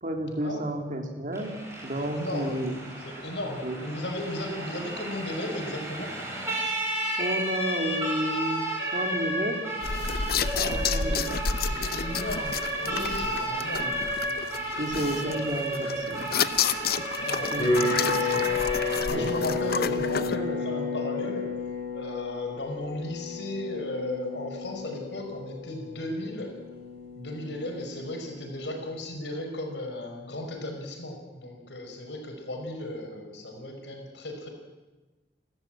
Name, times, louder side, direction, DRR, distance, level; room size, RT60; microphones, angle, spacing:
voice 1, 0.0-2.8 3.6-3.8 7.2-8.6 8.9-9.6 10.5-11.4 13.8-14.0 14.8-16.3 17.5-18.5 19.1-19.3, right 1 dB, 45° right, 3 dB, 3.2 m, -32 dB
Siren, 1.3-19.0, right 1 dB, 15° right, 7.4 m, -32 dB
voice 2, 2.0-2.6 3.0-6.1 10.5-11.1 11.5-13.9 17.1-18.2 19.1-21.5 21.9-26.5 27.2-34.5, left 1 dB, 80° left, 3 dB, 5.4 m, -35 dB
sound 1, 9.8-20.4, left 6 dB, 60° left, 0.9 m, -31 dB
sound 2, 17.6-28.6, left 4 dB, 35° left, 5.4 m, -32 dB
30.0 x 13.5 x 9.0 m, 1.2 s
head